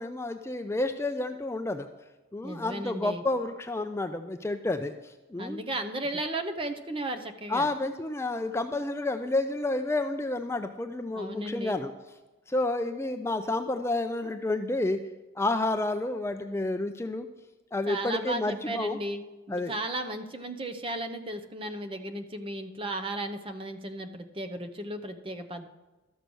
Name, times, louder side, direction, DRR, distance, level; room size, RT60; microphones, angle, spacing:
voice 1, 0.0-1.9 2.3-5.6 7.5-11.9 12.5-15.0 15.4-17.3 17.7-19.0 19.5-19.7, left 2 dB, 15° left, 7 dB, 0.4 m, -30 dB
voice 2, 2.4-3.2 5.4-7.7 11.1-11.8 17.9-19.2 19.5-25.7, right 1 dB, 30° right, 8 dB, 0.8 m, -35 dB
12.5 x 6.8 x 6.2 m, 1.1 s
head